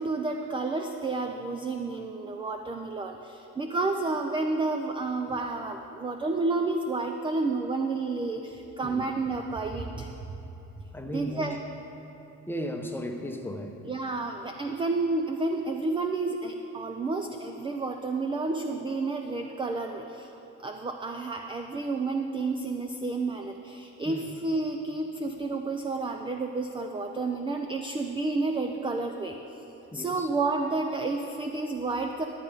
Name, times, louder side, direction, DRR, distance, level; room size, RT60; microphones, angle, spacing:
voice 1, 0.0-10.1 11.1-11.6 13.8-29.6 29.9-32.2, right 3 dB, 15° right, 5 dB, 0.4 m, -30 dB
voice 2, 10.9-11.4 12.5-13.8 24.0-24.3 29.9-30.3, equal, 5° left, 4 dB, 0.8 m, -35 dB
12.0 x 8.3 x 5.0 m, 3.0 s
cardioid pair, 115°, 36 cm